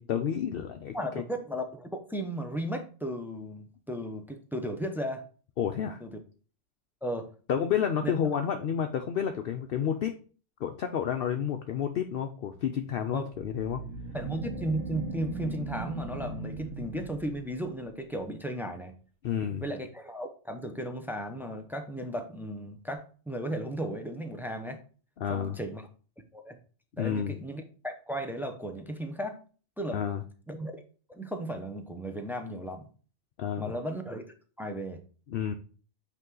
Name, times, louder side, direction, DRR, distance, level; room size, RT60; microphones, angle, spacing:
voice 1, 0.0-1.0 5.6-6.0 7.5-10.2 10.6-13.8 19.2-19.6 25.2-25.6 27.0-27.4 29.9-30.2 33.4-33.7 35.3-35.6, left 8 dB, 60° left, 6 dB, 0.7 m, -30 dB
voice 2, 0.9-5.2 6.0-6.1 7.0-7.3 8.0-8.1 13.1-13.3 14.1-18.9 19.6-24.8 25.3-25.8 26.3-26.6 26.9-29.4 29.8-30.0 30.5-30.7 31.1-32.9 33.6-34.2 34.6-35.0, equal, 5° right, 5 dB, 0.4 m, -35 dB
sound 1, 13.3-17.7, right 4 dB, 75° right, 1.3 m, -38 dB
8.3 x 3.0 x 3.8 m, 0.39 s
omnidirectional pair, 1.3 m